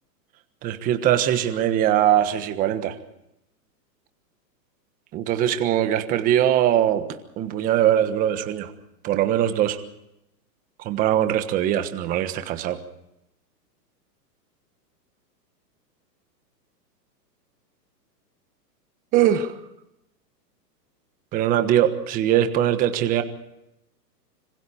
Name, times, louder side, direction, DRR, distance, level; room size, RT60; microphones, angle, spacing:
voice 1, 0.6-3.0 5.1-7.0 7.4-8.7 9.0-9.8 10.8-12.8 19.1-19.6 21.3-23.2, right 11 dB, 15° right, 9 dB, 1.3 m, -21 dB
26.5 x 25.5 x 4.4 m, 0.86 s
hypercardioid pair, 165°, 49 cm